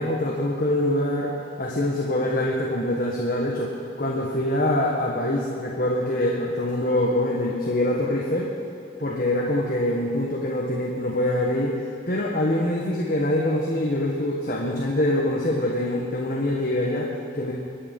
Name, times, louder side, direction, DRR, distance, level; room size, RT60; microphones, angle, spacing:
voice 1, 0.0-1.3 1.6-8.5 9.0-17.5, left 1 dB, 50° left, -3 dB, 1.6 m, -24 dB
23.0 x 9.1 x 5.5 m, 2.8 s
head